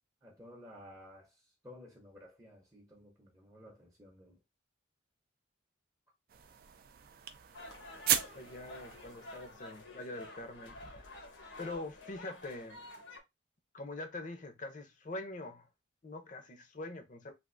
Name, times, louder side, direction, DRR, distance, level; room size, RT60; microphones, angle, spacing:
voice 1, 0.2-4.4, left 1 dB, 15° right, 0.6 m, -54 dB
sound 1, 6.3-9.8, right 10 dB, 50° right, 0.3 m, -37 dB
sound 2, 7.5-13.2, left 1 dB, 85° left, 1.0 m, -50 dB
voice 2, 8.3-11.1 11.6-12.9 13.7-15.7 16.0-17.3, left 2 dB, 40° left, 0.6 m, -44 dB
3.4 x 2.5 x 2.5 m
head